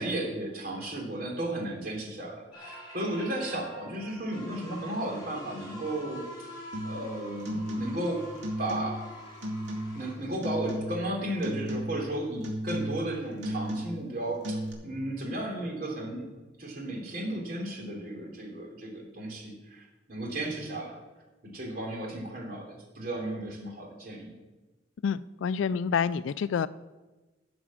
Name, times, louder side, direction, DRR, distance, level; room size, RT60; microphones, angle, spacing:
voice 1, 0.0-6.5 6.8-8.2 8.6-9.1 9.9-16.3 16.6-21.0 21.4-24.3, right 1 dB, 50° right, -1 dB, 3.2 m, -34 dB
sound 1, 2.5-10.2, equal, 25° left, 3.7 m, -46 dB
sound 2, 6.7-7.1 7.4-8.1 8.4-9.1 9.4-10.1 10.4-11.1 11.4-12.1 12.4-13.1 13.4-14.1 14.4-14.7, equal, 80° right, 2.3 m, -34 dB
voice 2, 25.0-26.7, left 6 dB, 90° left, 17 dB, 0.3 m, -28 dB
12.0 x 6.1 x 7.2 m, 1.2 s
head